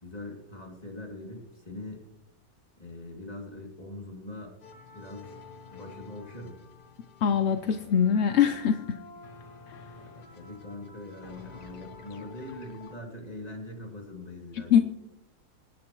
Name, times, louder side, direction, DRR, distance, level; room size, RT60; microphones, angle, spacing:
voice 1, 0.0-2.0 2.8-4.6 4.9-5.3 5.7-6.6 10.0-14.8, left 1 dB, 25° left, 0 dB, 2.7 m, -42 dB
sound 1, 4.6-12.9, left 4 dB, 85° left, 1.7 m, -49 dB
voice 2, 7.2-9.0 14.7-14.8, left 8 dB, 60° left, 9 dB, 0.7 m, -23 dB
25.0 x 10.0 x 3.1 m, 0.95 s
omnidirectional pair, 1.7 m